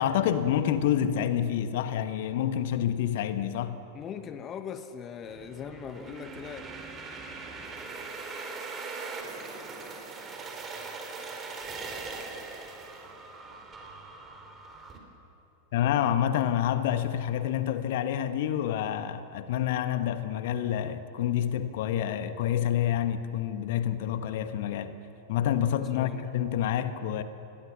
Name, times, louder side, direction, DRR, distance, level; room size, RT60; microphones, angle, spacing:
voice 1, 0.0-3.8 15.7-25.0 25.3-27.2, left 10 dB, 55° left, 1.3 m, -28 dB
voice 2, 3.9-6.6 25.7-26.3, left 8 dB, 30° left, 1.1 m, -40 dB
sound 1, 5.2-15.0, right 4 dB, 20° right, 4.3 m, -41 dB
28.0 x 22.0 x 7.2 m
figure-of-eight pair, 90°, 0 cm